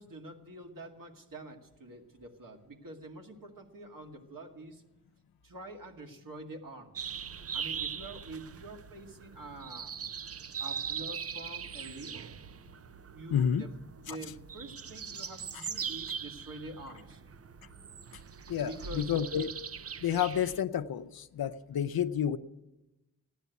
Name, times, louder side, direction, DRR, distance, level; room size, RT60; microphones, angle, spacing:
voice 1, 0.0-4.8 5.4-7.1 7.5-9.9 10.6-12.2 13.1-13.7 14.0-17.2 18.6-19.1, right 2 dB, 65° right, 2 dB, 2.2 m, -46 dB
sound 1, 6.9-20.6, right 7 dB, 40° right, 0.5 m, -41 dB
voice 2, 13.3-13.6 14.1-14.2 18.5-19.5 20.0-22.4, left 9 dB, 80° left, 9 dB, 0.7 m, -30 dB
15.0 x 10.5 x 8.2 m, 0.96 s
cardioid pair, 50°, 36 cm